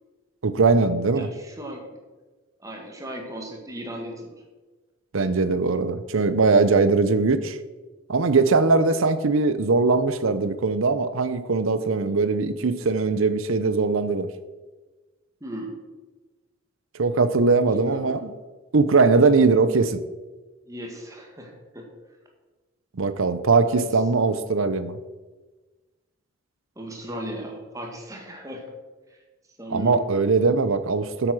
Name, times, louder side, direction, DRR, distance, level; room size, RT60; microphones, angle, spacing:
voice 1, 0.4-1.3 5.1-7.6 8.1-14.3 17.0-18.3 18.7-20.0 23.0-25.0 29.7-31.3, right 4 dB, 75° right, 12 dB, 0.6 m, -21 dB
voice 2, 1.1-2.0 2.6-4.3 15.4-15.7 17.7-18.2 20.7-21.9 23.6-24.4 26.8-28.6 29.1-29.2 29.6-30.1, right 1 dB, 15° right, 1 dB, 1.7 m, -37 dB
8.3 x 8.0 x 6.3 m, 1.2 s
head